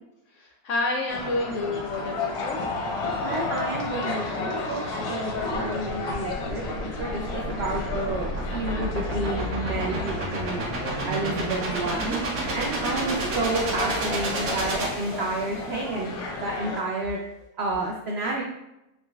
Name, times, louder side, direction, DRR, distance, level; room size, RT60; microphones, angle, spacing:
voice 1, 0.4-2.7, left 2 dB, 70° left, 0 dB, 0.7 m, -29 dB
sound 1, 1.1-16.8, left 3 dB, 85° left, 1.2 m, -33 dB
voice 2, 3.2-10.7 11.1-12.2 12.5-17.2 17.6-18.4, right 2 dB, 85° right, -1 dB, 0.5 m, -30 dB
sound 2, 5.3-15.6, right 1 dB, 65° right, 1.1 m, -31 dB
3.8 x 3.0 x 2.3 m, 0.88 s
omnidirectional pair, 1.7 m